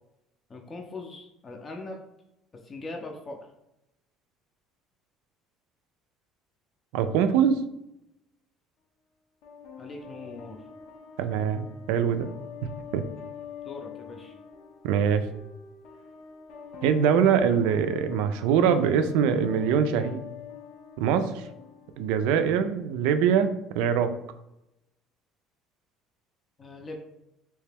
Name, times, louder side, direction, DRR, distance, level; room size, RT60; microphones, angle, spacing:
voice 1, 0.5-2.0 2.5-3.4 9.8-10.7 13.6-14.4 26.6-27.0, left 2 dB, 25° left, 2 dB, 0.4 m, -40 dB
voice 2, 6.9-7.6 11.2-12.3 12.9-13.0 14.8-15.2 16.8-20.2 21.0-21.4 22.0-24.1, right 7 dB, 90° right, 9 dB, 0.3 m, -23 dB
sound 1, 9.4-22.4, left 7 dB, 85° left, 0.7 m, -45 dB
3.2 x 2.9 x 3.4 m, 0.88 s
cardioid pair, 125°, 0 cm